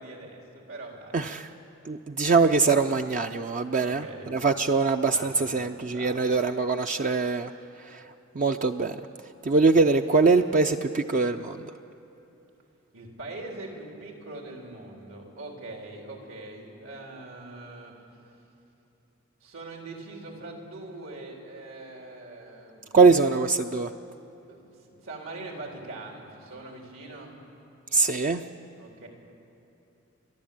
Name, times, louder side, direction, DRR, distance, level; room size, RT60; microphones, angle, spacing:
voice 1, 0.0-1.2 3.8-4.3 5.1-5.6 5.9-6.3 12.9-17.9 19.4-23.1 24.5-27.4 28.7-29.1, right 2 dB, 80° right, 0 dB, 4.0 m, -42 dB
voice 2, 1.1-1.5 1.9-7.5 7.9-8.0 8.4-9.0 9.4-11.7 22.9-23.9 27.9-28.4, right 4 dB, 40° right, 6 dB, 0.5 m, -23 dB
29.5 x 12.0 x 8.8 m, 2.9 s
head